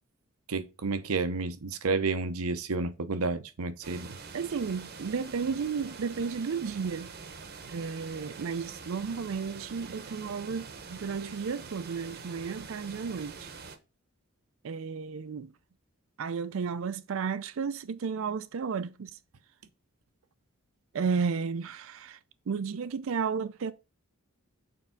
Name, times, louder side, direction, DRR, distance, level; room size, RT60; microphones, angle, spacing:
voice 1, 0.5-4.2, right 3 dB, 90° right, 0.8 m, -31 dB
sound 1, 3.8-13.8, right 5 dB, 45° right, 0.9 m, -45 dB
voice 2, 4.3-7.1 7.7-13.5 14.6-15.5 16.2-19.1 20.9-22.2 22.5-23.7, right 5 dB, 65° right, 0.4 m, -33 dB
6.8 x 3.6 x 5.7 m
head